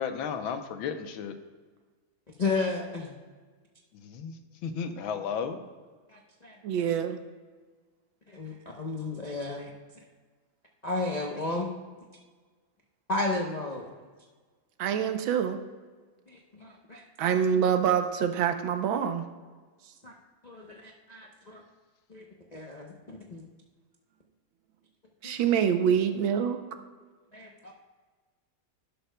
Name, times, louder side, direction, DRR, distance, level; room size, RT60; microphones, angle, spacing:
voice 1, 0.0-1.4 3.9-4.4 4.6-5.6, left 6 dB, 85° left, 8 dB, 1.6 m, -33 dB
voice 2, 2.4-3.1 6.1-6.6 8.3-9.7 10.8-11.7 13.1-13.9 16.3-17.4 20.0-20.1 20.4-21.6 22.1-22.2 22.5-23.4 25.2-25.4 27.3-27.7, left 3 dB, 60° left, -2 dB, 0.4 m, -33 dB
voice 3, 6.6-7.2 14.8-15.6 17.2-19.2 25.2-26.6, right 8 dB, 80° right, 7 dB, 1.6 m, -25 dB
12.0 x 11.0 x 2.2 m, 1.4 s
omnidirectional pair, 2.1 m